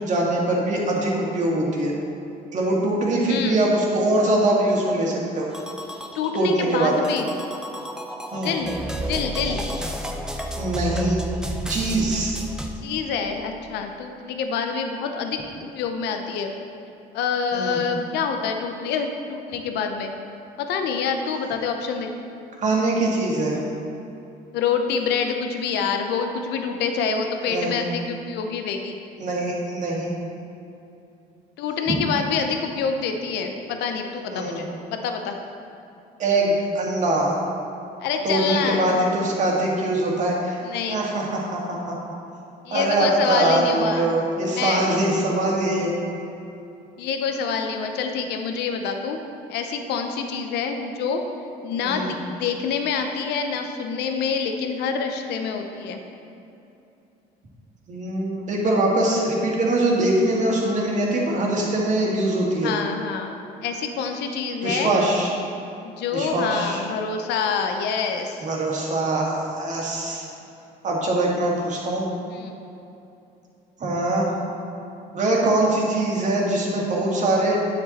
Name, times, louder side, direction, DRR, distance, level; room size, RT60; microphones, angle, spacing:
voice 1, 0.0-1.9 2.5-5.5 6.3-6.9 8.3-8.6 10.6-11.2 11.7-12.4 17.5-17.8 22.6-23.6 27.5-27.8 29.2-30.1 31.9-32.0 34.3-34.6 36.2-37.3 38.2-40.6 40.9-41.8 42.7-45.9 51.9-52.1 57.9-62.7 64.6-65.3 66.1-66.8 68.4-70.2 70.8-72.1 73.8-74.3 75.1-77.6, right 2 dB, 45° right, -3 dB, 2.1 m, -23 dB
voice 2, 3.3-3.6 6.1-7.3 8.3-8.8 9.1-9.7 12.8-16.5 17.1-20.1 20.6-22.1 24.5-29.0 31.6-35.4 38.0-38.9 40.6-41.0 42.6-44.2 44.5-44.9 47.0-49.2 49.5-51.2 51.6-56.0 62.6-64.9 65.8-68.4 72.3-72.6, left 6 dB, 80° left, 5 dB, 0.8 m, -26 dB
sound 1, 5.5-12.7, right 1 dB, 5° right, 0.8 m, -32 dB
9.5 x 7.6 x 4.2 m, 2.8 s
cardioid pair, 110°, 17 cm